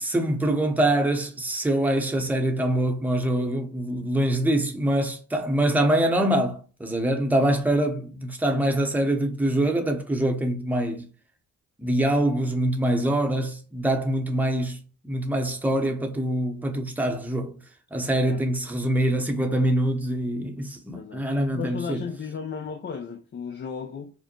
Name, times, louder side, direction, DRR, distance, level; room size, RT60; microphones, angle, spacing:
voice 1, 0.0-11.0 11.8-14.8 15.0-17.6 17.9-22.0, right 1 dB, 5° right, 0.8 m, -24 dB
voice 2, 20.9-21.2 21.5-24.1, left 6 dB, 30° left, 0.5 m, -34 dB
4.8 x 2.1 x 3.0 m
cardioid pair, 90°, 37 cm